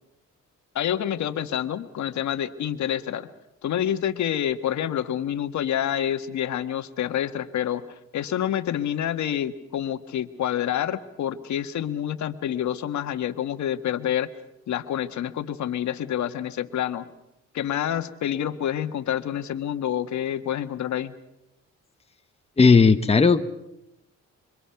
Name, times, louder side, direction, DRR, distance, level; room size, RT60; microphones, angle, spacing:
voice 1, 0.7-3.3 3.6-7.8 8.1-14.3 14.7-17.1 17.5-21.1, left 10 dB, 70° left, 9 dB, 1.5 m, -27 dB
voice 2, 22.6-23.4, left 4 dB, 20° left, 7 dB, 1.2 m, -16 dB
27.0 x 24.5 x 5.9 m, 0.88 s
cardioid pair, 90°, 30 cm